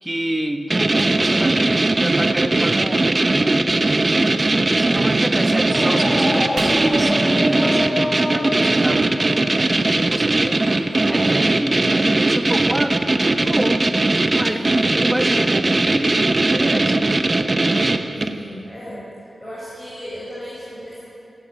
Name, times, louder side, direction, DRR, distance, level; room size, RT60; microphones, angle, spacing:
voice 1, 0.0-3.8 4.1-4.5 4.8-9.2 9.5-13.9 14.3-14.6 15.0-17.1, right 1 dB, 15° right, 4 dB, 1.8 m, -28 dB
sound 1, 0.7-18.4, right 2 dB, 35° right, 1.0 m, -19 dB
sound 2, 1.0-2.4 6.5-8.1, right 2 dB, 65° right, 5.1 m, -39 dB
sound 3, 5.7-11.5, left 1 dB, 35° left, 2.4 m, -28 dB
voice 2, 14.4-14.8 17.7-17.8 18.1-19.0 19.4-21.1, equal, 20° left, -8 dB, 7.4 m, -35 dB
21.5 x 16.0 x 9.2 m, 2.6 s
wide cardioid pair, 95°, 0 cm